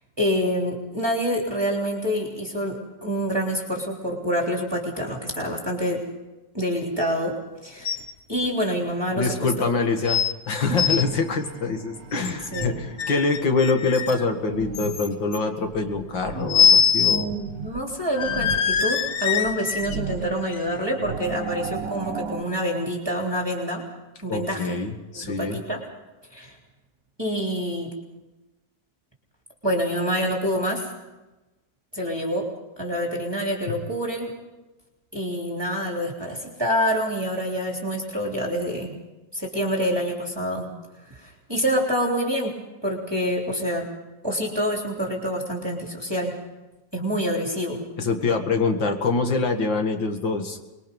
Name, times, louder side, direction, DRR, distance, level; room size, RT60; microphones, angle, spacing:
voice 1, 0.2-6.0 6.5-7.3 7.6-8.0 8.3-9.5 12.5-12.7 17.1-23.8 24.2-24.8 25.1-25.8 26.3-26.6 27.2-27.9 29.6-30.9 31.9-32.5 32.8-34.3 35.1-38.9 39.3-40.7 41.1-42.5 42.8-43.9 44.2-46.4 46.9-47.8, equal, 15° right, -1 dB, 3.4 m, -27 dB
sound 1, 7.9-8.1 8.5-8.6 9.3-9.4 10.1-10.3 10.6-11.0 12.1-12.7 13.0-14.3 14.7-15.4 16.5-17.3 17.6-17.7 18.2-20.0 20.5-20.6, left 7 dB, 55° left, 1.1 m, -22 dB
voice 2, 9.1-17.4 24.3-25.6 48.0-50.6, left 4 dB, 80° left, 5 dB, 2.6 m, -25 dB
sound 2, 10.6-22.4, right 5 dB, 50° right, 1.8 m, -37 dB
25.0 x 22.0 x 5.4 m, 1.1 s
omnidirectional pair, 2.0 m